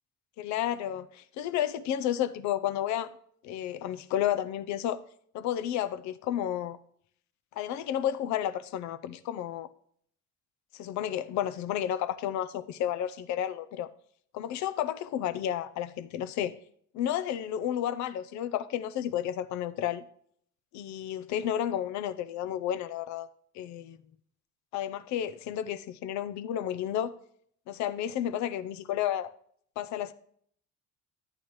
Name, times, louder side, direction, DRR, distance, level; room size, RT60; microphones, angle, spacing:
voice 1, 0.4-3.1 3.4-5.0 5.3-6.8 7.6-9.7 10.7-13.9 14.3-16.5 16.9-20.0 20.7-23.3 23.5-24.0 24.7-27.1 27.7-29.3 29.8-30.1, left 11 dB, 60° left, 0.6 m, -31 dB
12.5 x 8.8 x 3.1 m
cardioid pair, 180°, 32 cm